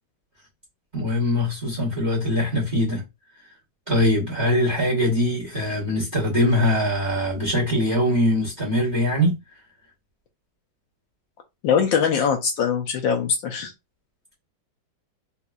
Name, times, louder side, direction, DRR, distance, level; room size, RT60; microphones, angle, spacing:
voice 1, 0.9-3.0 3.9-9.3, left 1 dB, 30° right, 1.0 m, -22 dB
voice 2, 11.6-13.7, left 7 dB, 75° left, 1.2 m, -22 dB
4.1 x 2.5 x 2.3 m
omnidirectional pair, 2.3 m